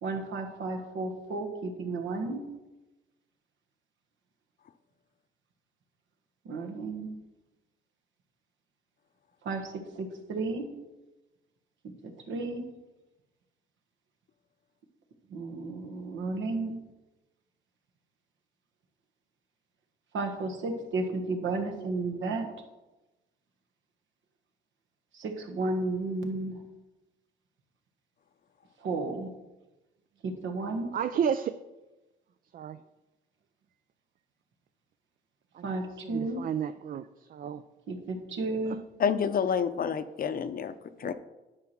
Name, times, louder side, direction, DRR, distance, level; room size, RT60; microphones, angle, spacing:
voice 1, 0.0-2.4 6.4-7.2 9.4-10.7 12.0-12.7 15.3-16.8 20.1-22.5 25.1-26.6 28.8-29.3 30.2-30.9 35.6-36.5 37.9-38.8, right 3 dB, 75° right, 3 dB, 1.5 m, -33 dB
voice 2, 30.9-31.6 32.5-32.8 35.6-35.7 36.0-37.1 37.3-37.6 41.0-41.1, right 8 dB, 45° right, 12 dB, 0.4 m, -31 dB
voice 3, 39.0-40.7 41.0-41.1, left 7 dB, 45° left, 11 dB, 0.6 m, -28 dB
9.6 x 4.7 x 6.0 m, 1.1 s
cardioid pair, 90°, 20 cm